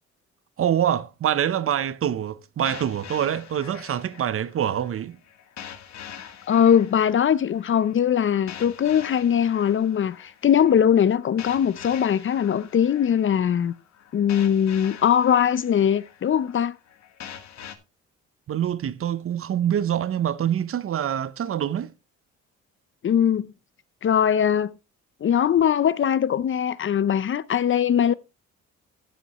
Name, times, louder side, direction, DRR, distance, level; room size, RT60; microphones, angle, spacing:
voice 1, 0.6-5.2 18.5-21.9, right 10 dB, 50° right, 0.7 m, -25 dB
sound 1, 2.7-17.8, left 9 dB, 65° left, 1.4 m, -44 dB
voice 2, 6.5-13.7 14.1-16.8 23.0-23.5 24.0-24.7 25.2-28.1, left 9 dB, 40° left, 0.5 m, -21 dB
13.0 x 7.9 x 2.9 m
cardioid pair, 90°, 30 cm